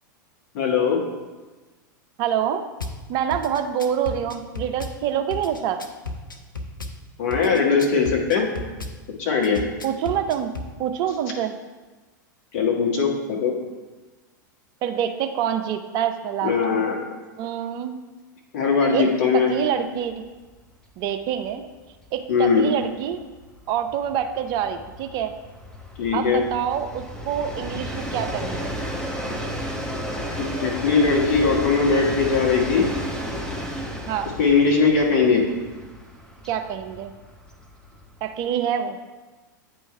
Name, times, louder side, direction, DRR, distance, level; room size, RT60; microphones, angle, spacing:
voice 1, 0.5-1.0 7.2-8.5 9.2-9.6 12.5-13.5 16.4-17.0 18.5-19.5 22.3-22.7 26.0-26.4 30.6-32.9 34.4-35.4, left 5 dB, 50° left, -1 dB, 1.5 m, -20 dB
voice 2, 2.2-2.6 3.1-5.8 9.8-10.5 10.8-11.5 14.8-16.8 17.4-17.9 18.9-19.1 19.3-20.1 21.0-21.6 22.1-23.2 23.7-25.3 26.1-28.7 34.1-34.3 36.5-37.1 38.2-39.0, right 9 dB, 40° right, 7 dB, 0.6 m, -26 dB
Drum kit / Bass drum, 2.8-3.0 3.3-5.0 5.3-7.0 7.3-9.0 9.4-10.7, left 2 dB, 85° left, 0.6 m, -34 dB
Train, 20.1-20.2 20.5-20.6 20.9-38.3, equal, 5° left, 0.9 m, -33 dB
9.0 x 3.2 x 4.3 m, 1.3 s
figure-of-eight pair, 95°, 11 cm